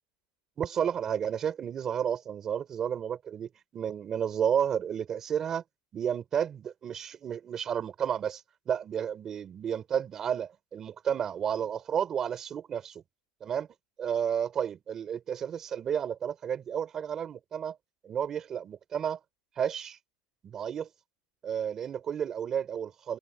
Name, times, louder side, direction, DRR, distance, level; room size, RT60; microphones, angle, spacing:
voice 1, 0.6-5.6 5.9-13.0 13.4-13.7 14.0-17.8 18.0-19.2 19.6-20.0 20.4-20.9 21.4-23.2, right 8 dB, 20° right, 4.3 m, -32 dB
supercardioid pair, 170°, 2 cm